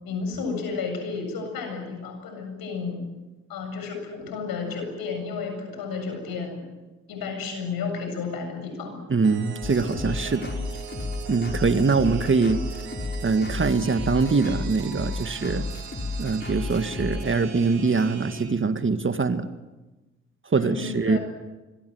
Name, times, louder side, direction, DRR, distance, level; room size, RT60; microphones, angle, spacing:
voice 1, 0.0-3.0 3.5-6.6 7.1-9.1 20.5-21.2, left 5 dB, 70° left, 5 dB, 7.6 m, -32 dB
voice 2, 9.1-10.5 11.3-12.6 13.2-15.7 16.2-19.5 20.5-21.2, right 4 dB, 30° right, 10 dB, 2.0 m, -23 dB
sound 1, 9.2-18.4, right 6 dB, 75° right, 4.0 m, -40 dB
sound 2, 9.6-17.3, left 3 dB, 30° left, 5.7 m, -33 dB
26.0 x 23.0 x 7.9 m, 1.1 s
hypercardioid pair, 40°, 38 cm